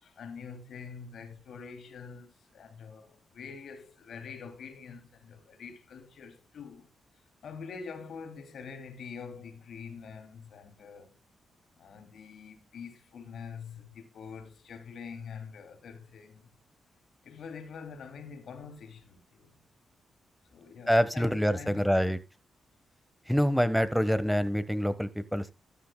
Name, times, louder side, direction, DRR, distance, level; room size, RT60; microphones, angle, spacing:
voice 1, 0.0-6.9 7.4-11.1 11.8-16.5 17.2-19.5 20.5-21.8, left 6 dB, 75° left, 2.8 m, -45 dB
voice 2, 20.9-22.2 23.3-25.5, equal, ahead, 1.3 m, -26 dB
13.0 x 10.0 x 2.3 m
cardioid pair, 65°, 0 cm